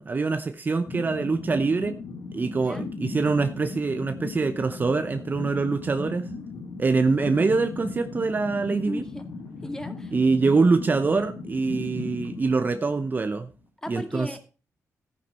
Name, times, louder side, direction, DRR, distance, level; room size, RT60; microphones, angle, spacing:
voice 1, 0.0-2.0 2.3-6.3 6.8-9.0 10.1-13.5 13.9-14.4, right 4 dB, 30° right, 9 dB, 0.8 m, -24 dB
sound 1, 0.9-13.5, left 3 dB, 85° left, 3.6 m, -37 dB
voice 2, 8.8-9.2 9.6-10.1 13.8-14.4, left 1 dB, 10° left, 6 dB, 2.2 m, -35 dB
14.0 x 9.7 x 4.4 m, 0.34 s
cardioid pair, 110°, 6 cm